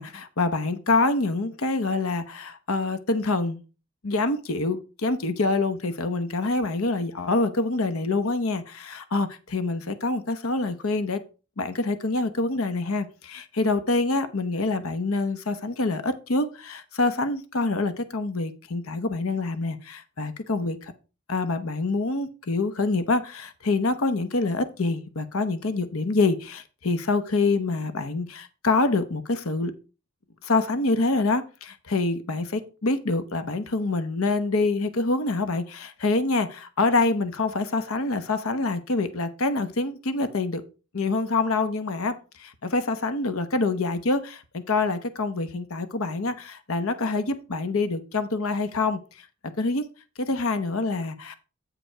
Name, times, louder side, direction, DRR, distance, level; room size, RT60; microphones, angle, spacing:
voice 1, 0.0-3.6 4.0-11.2 11.6-20.9 21.3-29.7 30.4-40.6 40.9-49.3 49.6-49.8 50.2-51.4, left 3 dB, 70° left, 0.9 m, -26 dB
8.9 x 5.1 x 4.5 m
head